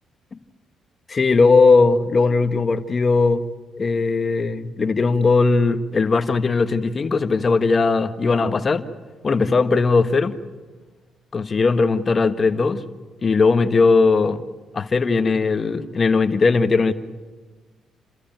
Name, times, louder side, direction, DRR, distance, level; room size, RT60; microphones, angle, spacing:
voice 1, 1.1-3.5 3.8-8.8 9.2-10.4 11.3-12.8 13.2-14.4 14.7-16.9, left 4 dB, 35° left, 1.5 m, -18 dB
29.0 x 14.0 x 9.1 m
cardioid pair, 90°, 0 cm